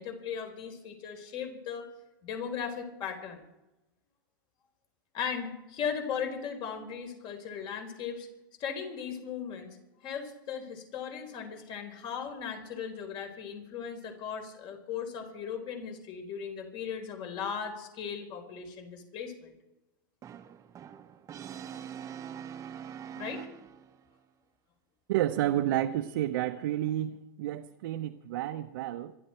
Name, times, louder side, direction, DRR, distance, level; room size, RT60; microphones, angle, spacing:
voice 1, 0.0-1.9 2.2-3.4 5.1-8.3 8.6-9.8 10.0-19.5 23.2-23.5, left 7 dB, 45° left, 5 dB, 4.4 m, -37 dB
Brass instrument, 20.2-24.0, right 8 dB, 25° right, 1.0 m, -43 dB
voice 2, 25.1-29.2, right 13 dB, 70° right, 4 dB, 1.0 m, -30 dB
26.0 x 12.0 x 4.5 m, 0.98 s
hypercardioid pair, 120°, 12 cm